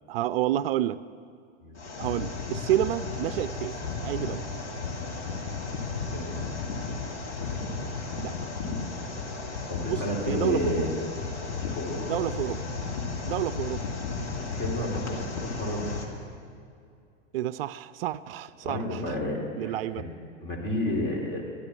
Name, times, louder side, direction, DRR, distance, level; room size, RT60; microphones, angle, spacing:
voice 1, 0.1-1.0 2.0-3.8 4.0-4.4 8.2-8.3 9.9-10.9 12.1-12.6 13.3-13.8 17.3-19.2 19.6-20.1, right 13 dB, 55° right, 15 dB, 0.4 m, -29 dB
sound 1, 1.7-16.0, left 4 dB, 70° left, 2.1 m, -34 dB
voice 2, 6.1-6.6 9.7-10.9 11.5-12.2 14.5-15.2 15.4-16.0 18.6-20.0 20.4-21.5, left 1 dB, 30° left, -1 dB, 3.3 m, -31 dB
12.0 x 9.9 x 7.4 m, 2.4 s
hypercardioid pair, 100°, 36 cm